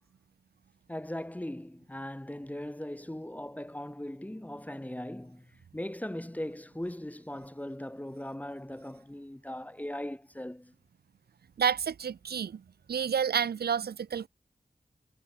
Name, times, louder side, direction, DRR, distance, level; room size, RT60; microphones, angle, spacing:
voice 1, 0.9-10.7, left 1 dB, 10° left, 1.3 m, -39 dB
voice 2, 11.6-12.6 12.9-14.3, right 7 dB, 75° right, 0.5 m, -29 dB
wide cardioid pair, 95°, 17 cm